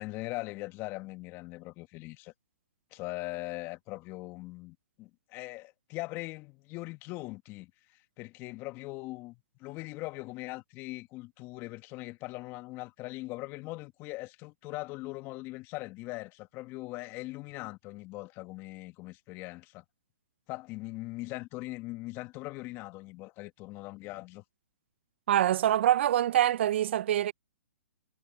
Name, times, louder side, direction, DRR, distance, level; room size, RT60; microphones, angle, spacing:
voice 1, 0.0-2.3 2.9-19.8 20.5-24.4, left 21 dB, 30° left, 1.6 m, -41 dB
voice 2, 25.3-27.3, right 12 dB, 55° right, 0.5 m, -25 dB
hypercardioid pair, 130°, 7 cm